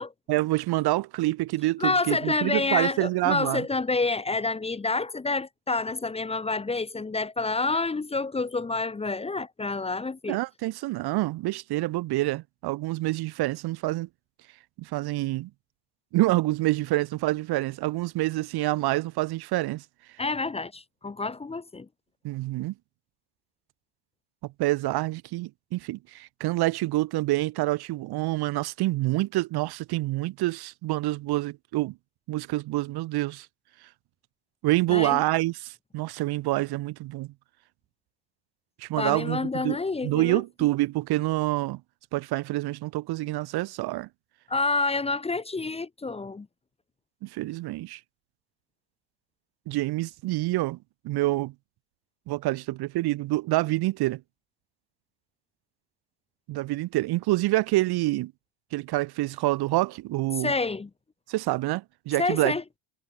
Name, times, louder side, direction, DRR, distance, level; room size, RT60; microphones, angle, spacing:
voice 1, 0.3-3.6 10.3-14.1 14.8-15.5 16.1-19.8 22.2-22.7 24.6-31.9 32.3-33.5 34.6-37.3 38.8-39.8 40.0-41.8 42.1-44.1 47.2-48.0 49.7-50.8 51.0-51.5 52.3-54.2 56.5-58.3 58.7-60.5 61.3-62.5, right 18 dB, 50° right, 1.3 m, -27 dB
voice 2, 1.8-10.4 20.2-21.9 34.9-35.2 39.0-40.4 44.5-46.5 60.4-60.9 62.2-62.6, left 3 dB, 10° left, 1.2 m, -28 dB
cardioid pair, 140°, 50 cm